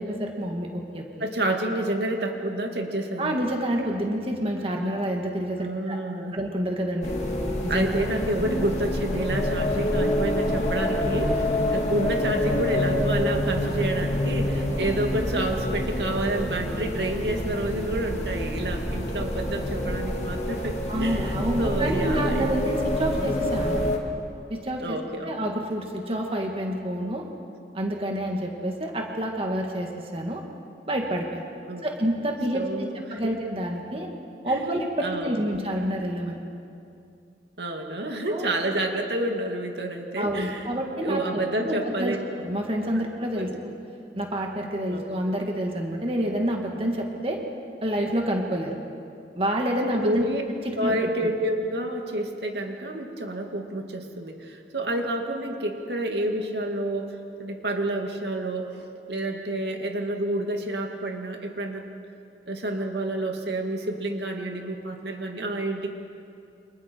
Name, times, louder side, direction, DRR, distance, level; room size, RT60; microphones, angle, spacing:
voice 1, 0.0-1.3 3.2-6.0 6.3-7.2 7.6-7.9 8.3-8.4 20.9-23.8 24.5-27.3 27.7-30.4 30.9-31.5 31.8-34.1 34.4-36.4 38.3-38.5 40.2-42.2 42.4-43.7 44.1-47.4 47.8-48.8 49.3-50.3 50.6-51.0, equal, 35° right, 1 dB, 2.1 m, -28 dB
voice 2, 1.2-3.3 5.6-6.4 7.7-22.5 24.8-25.3 31.7-31.9 32.5-33.3 34.5-34.6 35.0-35.4 37.6-40.7 41.0-42.2 43.0-43.1 43.3-43.6 44.9-45.0 49.9-50.4 50.8-58.7 59.1-61.9 62.5-65.9, right 1 dB, 75° right, 3 dB, 2.3 m, -29 dB
sound 1, 7.0-24.0, left 1 dB, 40° left, 2.6 m, -27 dB
29.0 x 27.0 x 4.7 m, 2.6 s
head